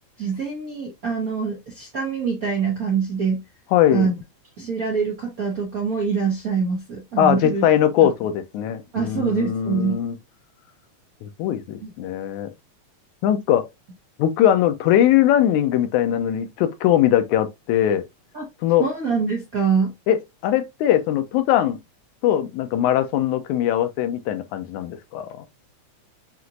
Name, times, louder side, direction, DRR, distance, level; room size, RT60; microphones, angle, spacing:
voice 1, 0.2-3.4 3.9-4.2 4.6-7.6 8.0-8.1 8.9-10.0 11.8-11.9 18.3-18.4 18.8-19.9, right 5 dB, 55° right, 0.9 m, -24 dB
voice 2, 3.7-4.1 7.2-10.1 11.2-12.5 13.2-13.7 14.2-18.0 18.6-18.9 20.1-21.8 22.2-25.5, left 11 dB, 90° left, 2.1 m, -20 dB
6.0 x 2.9 x 2.5 m
omnidirectional pair, 3.4 m